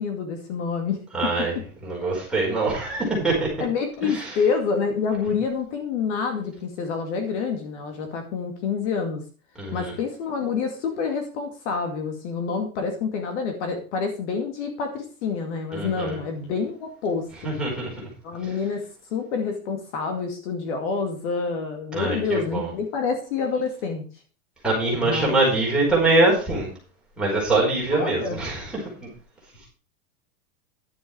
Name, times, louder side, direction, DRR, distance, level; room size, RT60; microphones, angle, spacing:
voice 1, 0.0-1.5 3.6-9.2 9.7-17.5 18.2-24.0 25.0-25.4 27.9-28.4, left 5 dB, 50° left, 4 dB, 2.4 m, -27 dB
voice 2, 1.1-1.5 1.8-3.5 4.0-4.3 9.6-9.9 15.7-16.2 17.4-18.1 21.9-22.7 24.6-26.7 27.2-29.1, right 2 dB, ahead, -6 dB, 4.8 m, -23 dB
11.5 x 8.2 x 4.6 m, 0.36 s
supercardioid pair, 175°, 45 cm